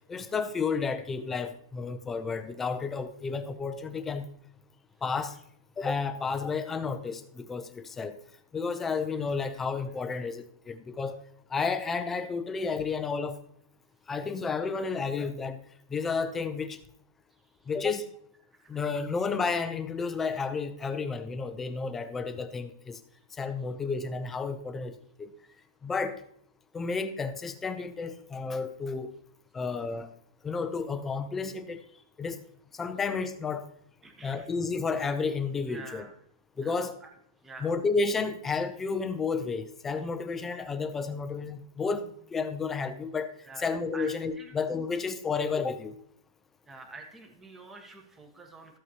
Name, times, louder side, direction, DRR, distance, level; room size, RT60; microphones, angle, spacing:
voice 1, 0.1-4.3 5.0-5.4 5.8-8.2 8.5-11.2 11.5-13.4 14.1-15.6 15.9-16.8 17.7-18.1 18.7-23.0 23.4-25.3 25.8-26.2 26.7-29.1 29.5-30.1 30.4-31.8 32.2-32.4 32.7-33.7 34.2-36.1 36.6-36.9 37.6-43.3 43.6-45.9, left 4 dB, 10° left, 10 dB, 0.6 m, -31 dB
voice 2, 34.0-34.5 35.7-36.1 36.6-36.7 37.0-37.1 37.4-37.7 43.4-44.1 44.4-44.5 46.7-48.8, right 3 dB, 10° right, 4 dB, 1.3 m, -47 dB
13.5 x 8.0 x 2.9 m, 0.68 s
supercardioid pair, 160°, 2 cm